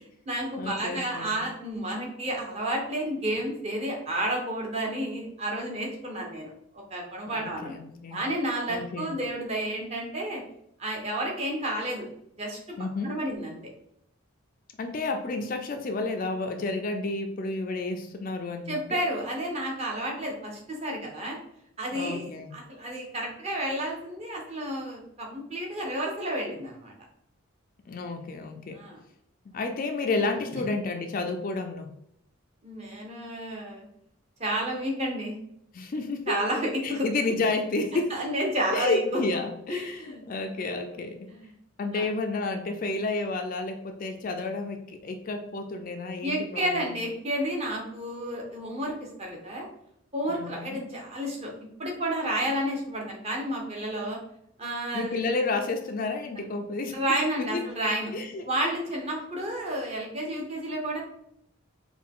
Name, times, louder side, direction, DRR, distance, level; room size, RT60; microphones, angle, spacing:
voice 1, 0.0-7.7 8.1-10.4 10.8-12.1 12.4-12.8 13.0-13.6 18.7-21.4 21.8-26.9 28.7-29.0 30.5-30.6 32.6-33.9 34.4-35.4 36.3-37.1 38.1-39.2 39.7-40.2 40.6-40.7 41.3-41.5 41.9-42.0 46.2-49.7 50.1-54.2 54.6-55.3 56.4-56.5 56.9-58.1 58.5-61.0, right 1 dB, 30° right, -1 dB, 0.9 m, -31 dB
voice 2, 0.6-1.4 7.3-8.2 8.7-9.1 12.8-13.2 14.8-19.0 21.9-22.5 27.9-28.8 29.5-31.9 35.7-36.3 36.8-38.2 38.7-41.3 41.8-47.0 50.3-50.9 54.9-57.0 57.4-57.6 58.1-58.5, left 3 dB, 40° left, 5 dB, 0.3 m, -31 dB
4.4 x 2.3 x 3.6 m, 0.75 s
head